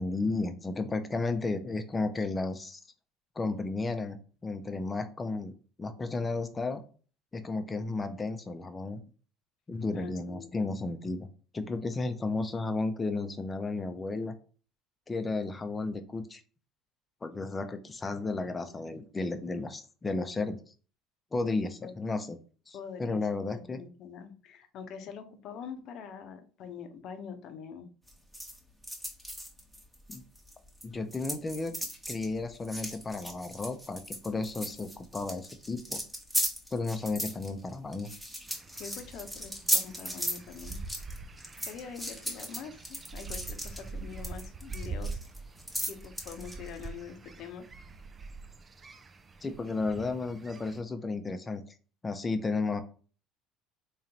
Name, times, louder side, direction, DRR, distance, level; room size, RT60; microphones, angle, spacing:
voice 1, 0.0-2.8 3.4-5.5 5.8-6.8 7.3-9.0 9.7-11.3 11.5-14.3 15.1-16.4 17.2-20.6 21.3-22.4 22.7-23.8 30.1-30.2 30.8-31.7 32.1-36.0 36.7-38.1 49.4-51.6 52.0-52.8, left 3 dB, 25° left, 8 dB, 0.7 m, -33 dB
voice 2, 9.9-10.5 18.7-19.0 21.8-21.9 22.7-27.9 38.8-40.8 41.6-45.1 45.9-47.6, left 7 dB, 60° left, 8 dB, 0.7 m, -44 dB
sound 1, 28.1-30.9 31.1-46.9, equal, 5° right, 1.1 m, -36 dB
sound 2, 38.5-50.8, right 3 dB, 30° right, 0.5 m, -44 dB
3.7 x 3.1 x 2.9 m, 0.39 s
supercardioid pair, 80°, 0 cm